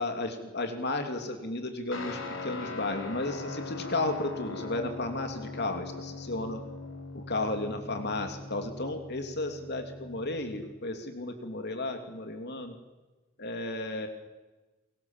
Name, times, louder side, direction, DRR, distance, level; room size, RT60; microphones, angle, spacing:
voice 1, 0.0-6.6 7.1-12.8 13.4-14.1, left 2 dB, 55° left, 5 dB, 2.9 m, -33 dB
Guitar, 1.9-10.7, left 3 dB, 75° left, 4.3 m, -41 dB
30.0 x 23.5 x 7.4 m, 1.2 s
head